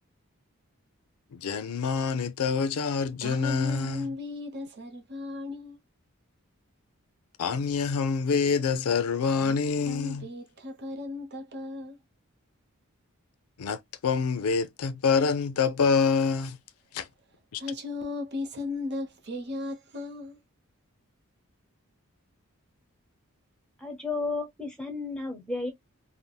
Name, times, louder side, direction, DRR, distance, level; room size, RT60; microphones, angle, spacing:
voice 1, 1.3-4.1 7.4-10.3 13.6-16.6 16.9-17.1 17.5-17.6, left 5 dB, 80° left, 0.4 m, -26 dB
voice 2, 3.2-5.8 9.4-9.6 9.8-12.0 17.6-20.4, left 2 dB, 50° right, 0.8 m, -36 dB
voice 3, 23.8-25.7, left 3 dB, 5° left, 0.7 m, -32 dB
3.3 x 2.0 x 2.2 m
head